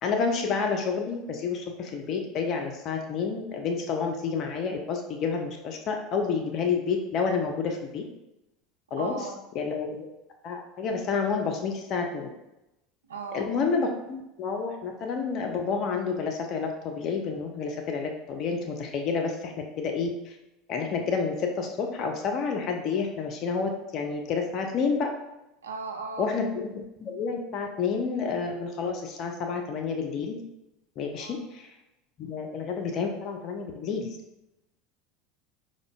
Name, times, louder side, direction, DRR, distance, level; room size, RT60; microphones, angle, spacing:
voice 1, 0.0-8.0 8.9-9.2 9.5-10.1 10.4-12.3 13.3-20.4 20.7-25.1 26.2-30.4 31.0-31.6 32.2-34.1, left 5 dB, 45° left, 3 dB, 0.4 m, -29 dB
voice 2, 9.0-9.4 13.1-13.5 25.6-26.3 31.1-31.4 32.2-32.4, right 4 dB, 75° right, 3 dB, 0.4 m, -37 dB
4.8 x 2.1 x 2.3 m, 0.92 s
figure-of-eight pair, 75°, 0 cm